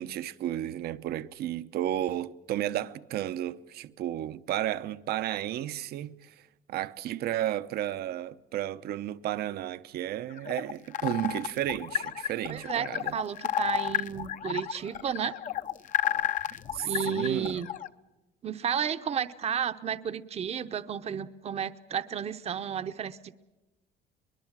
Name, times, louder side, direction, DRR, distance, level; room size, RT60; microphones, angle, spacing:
voice 1, 0.0-6.4 6.7-13.2 16.7-17.6, right 12 dB, 70° right, 0.8 m, -33 dB
sound 1, 10.3-17.9, left 10 dB, 50° left, 0.8 m, -32 dB
voice 2, 12.5-12.9 13.1-15.3 16.8-17.7 18.4-23.3, right 8 dB, 40° right, 0.8 m, -32 dB
23.0 x 21.0 x 7.4 m
cardioid pair, 110°, 17 cm